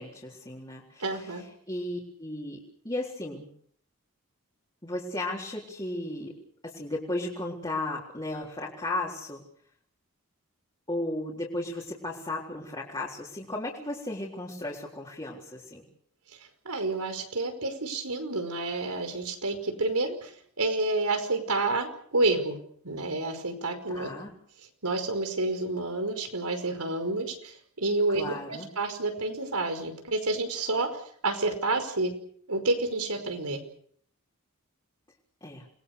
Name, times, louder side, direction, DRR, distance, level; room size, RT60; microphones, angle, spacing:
voice 1, 0.0-3.5 4.8-6.3 6.6-9.4 10.9-15.9 23.9-24.3 28.2-28.7 35.4-35.7, left 1 dB, 20° left, -3 dB, 4.0 m, -35 dB
voice 2, 1.0-1.4 16.7-20.3 20.6-22.6 22.8-24.1 24.8-30.9 31.2-32.1 32.5-33.6, right 2 dB, 90° right, 7 dB, 5.2 m, -29 dB
29.0 x 21.5 x 6.7 m, 0.62 s
head